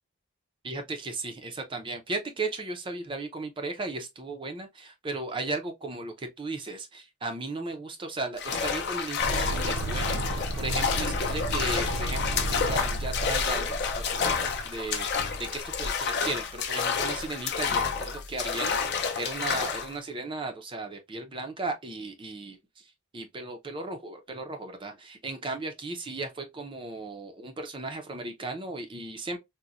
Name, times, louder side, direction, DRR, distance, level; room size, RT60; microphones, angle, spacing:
voice 1, 0.6-18.8 19.2-29.4, right 2 dB, 25° right, 0.4 m, -36 dB
sound 1, 8.4-19.9, left 6 dB, 50° left, 0.5 m, -29 dB
sound 2, 9.2-15.2, right 1 dB, 85° right, 0.6 m, -33 dB
4.0 x 2.1 x 2.3 m
head